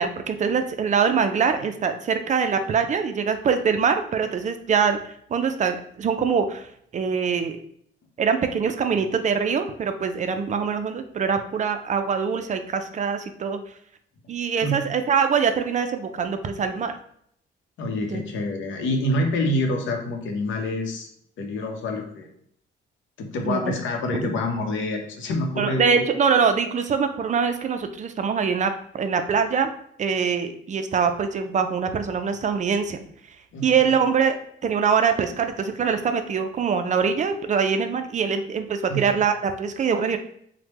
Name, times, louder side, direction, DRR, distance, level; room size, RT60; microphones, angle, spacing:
voice 1, 0.0-7.6 8.2-13.6 14.3-17.0 18.0-18.2 23.4-23.8 24.2-24.4 25.6-29.7 30.0-33.0 33.6-34.4 34.6-40.2, right 6 dB, 40° right, 7 dB, 0.4 m, -23 dB
voice 2, 14.6-14.9 17.8-21.1 21.4-22.3 23.2-25.9 33.5-33.9 38.9-39.0, left 1 dB, 75° left, 3 dB, 0.7 m, -27 dB
3.2 x 2.1 x 3.0 m, 0.68 s
cardioid pair, 90°, 20 cm